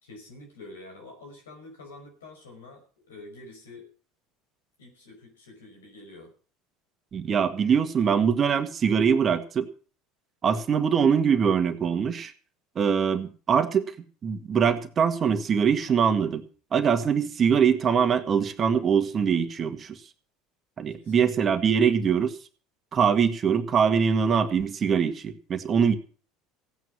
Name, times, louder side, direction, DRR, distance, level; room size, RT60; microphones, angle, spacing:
voice 1, 0.0-3.9 4.8-6.3 21.0-21.3, left 2 dB, 80° left, 3 dB, 5.4 m, -47 dB
voice 2, 7.1-9.7 10.4-12.3 12.8-13.9 14.2-16.4 16.7-20.0 20.8-22.4 22.9-25.9, right 7 dB, 35° right, 9 dB, 1.8 m, -23 dB
16.5 x 9.4 x 6.1 m, 0.41 s
hypercardioid pair, 70°, 0 cm